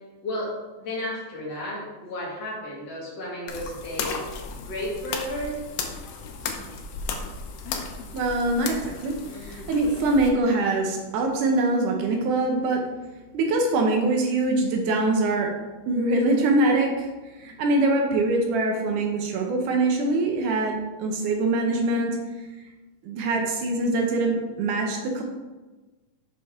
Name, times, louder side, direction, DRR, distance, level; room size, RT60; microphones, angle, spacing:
voice 1, 0.2-4.2 4.6-5.6, left 1 dB, 55° left, -5 dB, 2.6 m, -33 dB
sound 1, 3.5-10.3, left 5 dB, 75° left, 1.5 m, -35 dB
voice 2, 8.1-12.8 13.3-15.5 15.9-17.1 17.4-22.2 23.0-25.2, right 2 dB, 75° right, 2 dB, 2.2 m, -23 dB
7.2 x 5.8 x 3.6 m, 1.2 s
omnidirectional pair, 3.8 m